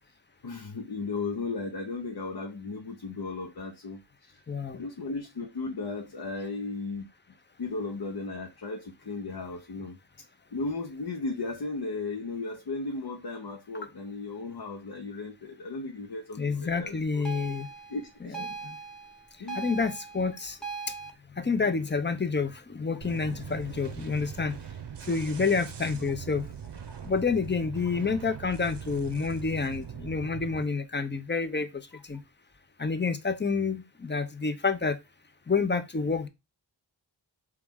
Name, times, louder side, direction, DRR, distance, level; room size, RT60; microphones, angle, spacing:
voice 1, 0.4-4.4 4.7-7.1 7.6-10.0 10.5-17.2 17.9-18.4 19.4-19.6 20.2-20.3, left 3 dB, 55° left, 0.8 m, -35 dB
voice 2, 4.5-4.8 16.4-17.7 19.5-20.6 21.4-24.6 25.1-26.4 27.0-31.7 32.1-32.2 32.8-35.0 35.5-36.3, left 4 dB, 25° left, 0.6 m, -28 dB
sound 1, 17.2-21.1, right 5 dB, ahead, 0.9 m, -40 dB
sound 2, 23.0-30.6, right 8 dB, 60° right, 0.7 m, -41 dB
4.7 x 3.1 x 3.5 m
wide cardioid pair, 60°, 47 cm